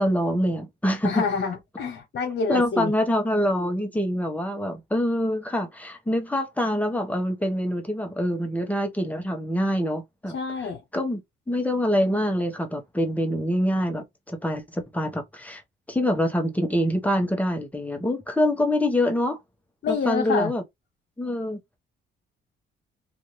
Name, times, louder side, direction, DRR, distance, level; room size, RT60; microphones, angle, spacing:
voice 1, 0.0-1.2 2.5-10.3 10.9-11.2 11.5-15.6 15.9-19.4 19.9-20.6 21.2-21.6, equal, 5° left, 0.9 m, -25 dB
voice 2, 1.0-2.9 10.3-10.8 19.8-20.5, left 5 dB, 60° left, 1.2 m, -27 dB
2.6 x 2.5 x 3.2 m
cardioid pair, 90°, 20 cm